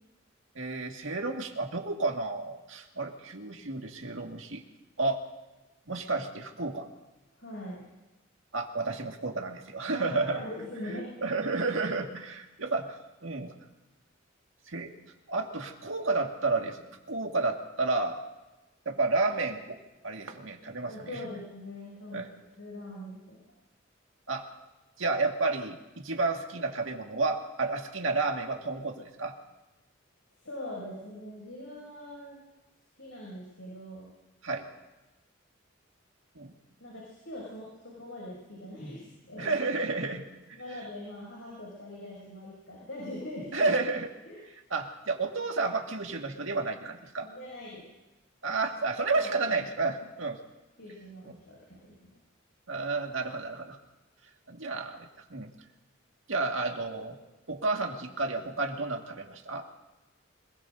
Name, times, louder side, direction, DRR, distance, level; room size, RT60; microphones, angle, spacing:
voice 1, 0.6-4.6 5.0-5.2 5.9-6.9 8.5-10.4 11.2-13.0 13.2-13.5 14.7-14.9 15.3-18.2 18.9-21.2 22.1-22.3 24.3-24.5 25.0-29.3 34.4-34.7 36.4-36.6 39.4-40.2 43.5-44.1 44.7-47.3 48.4-50.4 52.7-53.8 54.5-55.5 56.3-57.2 57.5-59.7, right 3 dB, 85° right, 2 dB, 1.9 m, -31 dB
voice 2, 7.4-7.8 9.9-11.1 20.8-23.4 30.4-32.4 33.0-34.1 36.8-39.6 40.6-43.7 44.2-44.5 47.2-47.8 49.0-49.7 50.8-52.2, left 1 dB, 80° left, -4 dB, 6.5 m, -42 dB
26.0 x 20.0 x 2.7 m, 1.1 s
head